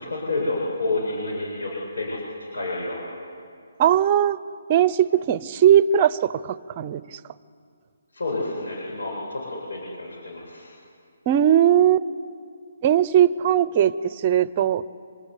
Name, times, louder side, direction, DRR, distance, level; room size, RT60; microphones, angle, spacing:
voice 1, 0.0-3.0 8.1-10.7, left 2 dB, 85° left, -3 dB, 7.9 m, -29 dB
voice 2, 3.8-4.4 4.7-7.2 11.3-12.0 12.8-14.8, right 10 dB, 25° right, 18 dB, 0.7 m, -19 dB
26.5 x 22.5 x 10.0 m, 2.3 s
hypercardioid pair, 170°, 0 cm